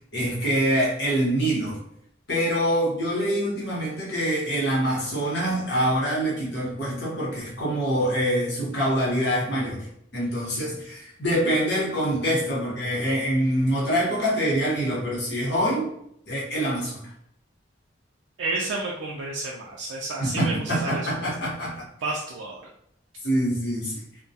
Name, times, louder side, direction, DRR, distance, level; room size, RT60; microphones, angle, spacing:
voice 1, 0.1-1.8 2.3-9.9 10.1-15.9 16.3-17.1 20.2-21.8 23.2-24.0, equal, 65° left, -5 dB, 1.0 m, -25 dB
voice 2, 18.4-21.1 22.0-22.6, right 2 dB, 85° right, -2 dB, 0.4 m, -30 dB
2.2 x 2.2 x 2.7 m, 0.73 s
head